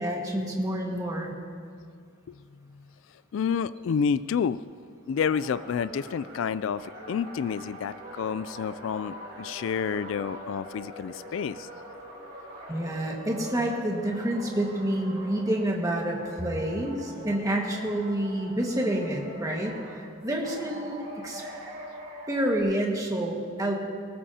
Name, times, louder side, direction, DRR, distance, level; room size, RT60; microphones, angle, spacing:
voice 1, 0.0-1.3 12.7-21.4 22.3-23.7, right 1 dB, 15° right, -1 dB, 1.7 m, -28 dB
voice 2, 3.3-4.6 5.1-11.7, left 6 dB, 65° left, 16 dB, 0.3 m, -29 dB
sound 1, 5.1-15.7 16.0-20.0 20.4-22.6, right 1 dB, 50° right, 3.9 m, -43 dB
20.0 x 18.5 x 2.9 m, 2.1 s
head